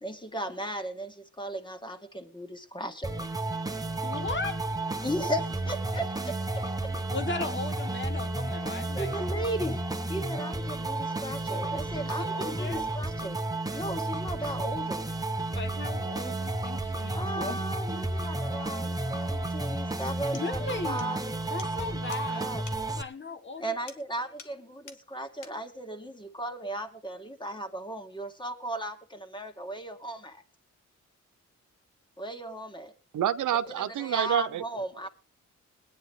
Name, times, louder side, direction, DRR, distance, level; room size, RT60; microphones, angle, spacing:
voice 1, 0.0-3.2 5.0-6.9 8.9-13.4 13.7-15.1 17.1-21.4 22.3-22.6 23.6-30.4 32.2-32.9 33.7-35.1, right 1 dB, 15° left, 2.4 m, -36 dB
sound 1, 3.0-23.0, right 2 dB, 10° right, 1.2 m, -32 dB
voice 2, 4.0-4.6 4.9-5.1 7.1-9.2 12.0-12.8 15.5-17.6 20.3-21.2 21.5-22.5 22.9-23.7, left 3 dB, 40° left, 1.4 m, -37 dB
sound 2, 20.3-20.5 21.0-21.1 21.6-21.7 22.1-22.3 22.7-22.8 23.9-24.1 24.4-24.6 24.9-25.0 25.4-25.6, left 6 dB, 90° left, 1.8 m, -47 dB
voice 3, 33.1-34.6 35.0-35.1, right 10 dB, 85° right, 0.8 m, -28 dB
21.5 x 9.6 x 3.8 m
cardioid pair, 80°, 30 cm